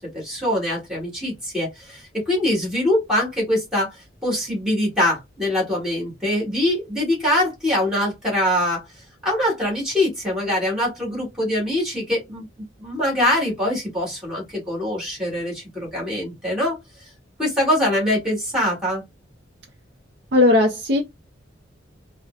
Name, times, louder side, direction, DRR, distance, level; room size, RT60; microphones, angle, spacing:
voice 1, 0.0-4.0 4.2-8.9 9.2-12.5 12.8-16.8 17.4-19.0, left 1 dB, 5° right, 1.8 m, -23 dB
voice 2, 20.3-21.0, left 2 dB, 60° right, 0.6 m, -16 dB
4.0 x 2.1 x 2.5 m
head